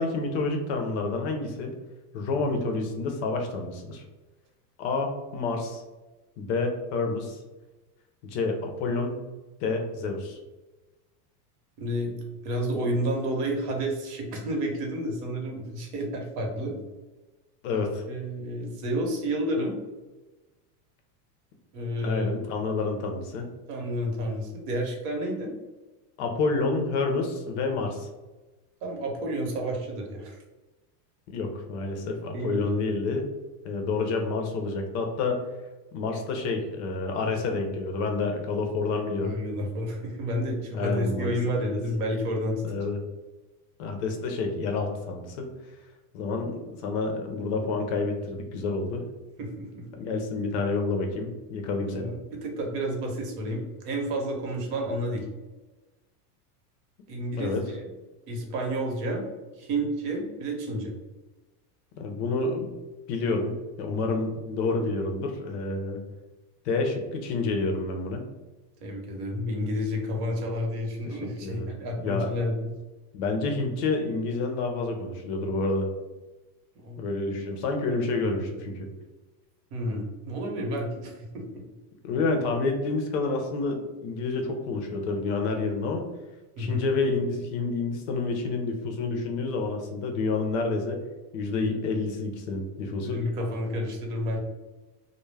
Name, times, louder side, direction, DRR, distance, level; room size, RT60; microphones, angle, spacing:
voice 1, 0.0-1.8 2.1-4.0 4.8-5.8 6.4-7.4 8.2-9.2 9.6-10.4 17.6-18.0 22.0-23.5 26.2-28.1 31.3-33.3 33.6-35.4 35.9-39.4 40.7-41.3 41.6-41.7 42.6-43.0 43.8-45.5 46.1-49.1 50.0-52.1 57.4-57.6 62.0-62.7 63.1-66.0 66.6-68.2 71.0-72.3 73.1-75.9 77.0-78.9 82.0-86.1 86.6-91.0 91.3-93.2, left 3 dB, 50° left, 3 dB, 0.4 m, -29 dB
voice 2, 11.8-12.2 12.4-16.7 18.1-19.8 21.7-22.3 23.7-25.5 28.8-30.4 32.3-32.7 39.2-42.6 49.4-49.9 51.8-55.3 57.1-57.9 58.3-59.2 59.6-60.9 68.8-72.7 76.8-77.0 79.7-81.6 86.6-86.8 93.0-94.4, equal, 75° right, 1 dB, 0.9 m, -30 dB
2.2 x 2.0 x 3.2 m, 1.1 s
supercardioid pair, 150°, 47 cm